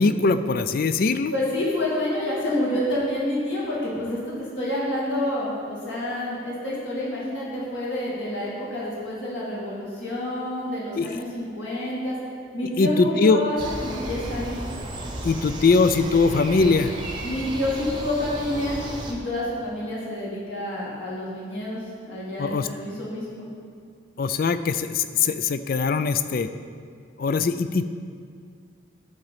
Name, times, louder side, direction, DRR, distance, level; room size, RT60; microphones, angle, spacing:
voice 1, 0.0-1.3 11.0-11.2 12.8-13.4 15.2-16.9 22.4-22.7 24.2-26.5 27.2-27.8, left 4 dB, 45° left, 11 dB, 0.3 m, -21 dB
voice 2, 1.3-12.2 12.5-14.6 17.2-18.8 19.1-21.8 22.1-23.5, left 1 dB, 60° left, -7 dB, 2.5 m, -28 dB
sound 1, 13.6-19.1, right 1 dB, 25° right, 0.8 m, -34 dB
11.0 x 3.9 x 7.3 m, 2.2 s
head